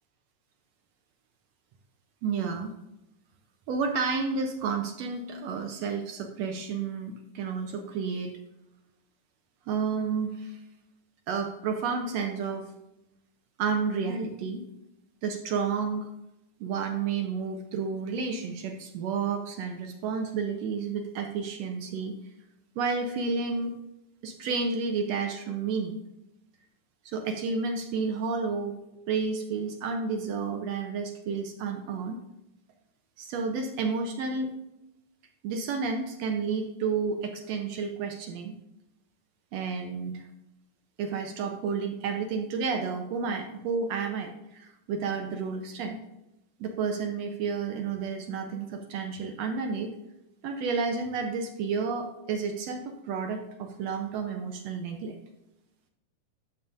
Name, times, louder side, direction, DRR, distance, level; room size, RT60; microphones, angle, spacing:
voice 1, 2.2-2.7 3.7-8.3 9.7-10.6 11.3-12.7 13.6-14.6 15.2-16.1 16.6-22.1 22.8-23.7 24.2-26.0 27.0-28.7 29.1-32.2 33.2-34.5 35.4-38.6 39.5-40.2 41.0-46.0 46.6-49.9 50.4-55.2, right 5 dB, 80° right, 4 dB, 1.5 m, -31 dB
11.0 x 7.0 x 2.5 m, 0.90 s
omnidirectional pair, 3.7 m